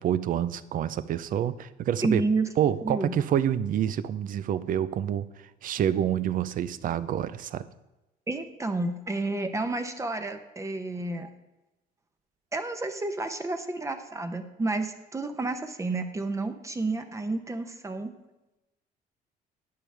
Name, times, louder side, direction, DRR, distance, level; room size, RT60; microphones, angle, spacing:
voice 1, 0.0-2.2 2.6-5.2 5.6-7.7, right 10 dB, 55° right, 15 dB, 0.5 m, -27 dB
voice 2, 2.0-2.5 2.8-3.2 8.3-11.3 12.5-18.1, right 3 dB, 15° right, 7 dB, 0.8 m, -30 dB
11.0 x 8.8 x 3.4 m, 0.99 s
cardioid pair, 110°, 17 cm